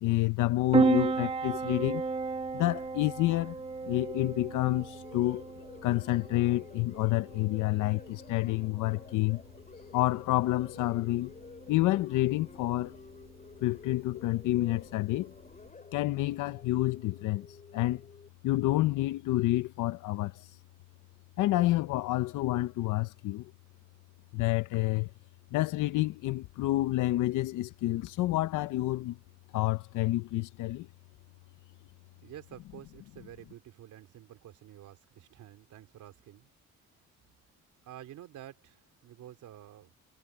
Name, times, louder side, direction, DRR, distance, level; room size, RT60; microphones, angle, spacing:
voice 1, 0.0-2.0 2.5-3.6 3.8-5.4 5.8-9.4 9.9-11.3 11.7-13.0 13.6-15.3 15.9-17.5 17.7-18.0 18.4-20.5 21.4-23.5 24.3-25.1 25.5-29.2 29.5-30.9, left 17 dB, 90° left, 0.8 m, -28 dB
Piano, 0.7-15.7, right 4 dB, 20° right, 1.1 m, -34 dB
sound 1, 4.5-18.3, left 4 dB, 25° left, 6.0 m, -52 dB
voice 2, 32.2-36.5 37.8-39.9, right 12 dB, 80° right, 3.3 m, -50 dB
cardioid pair, 90°, 30 cm